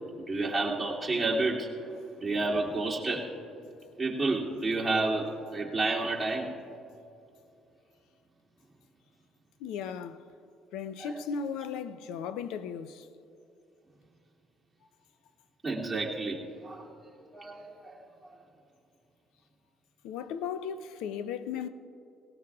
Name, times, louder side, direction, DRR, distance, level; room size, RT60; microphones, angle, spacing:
voice 1, 0.2-1.9 2.2-3.3 4.0-6.5 11.0-11.2 15.6-16.9 17.3-18.1, right 2 dB, 15° right, 2.6 m, -30 dB
voice 2, 9.6-10.2 10.7-13.1 20.0-21.7, left 7 dB, 85° left, 0.6 m, -36 dB
19.0 x 18.0 x 2.4 m
cardioid pair, 95°, 0 cm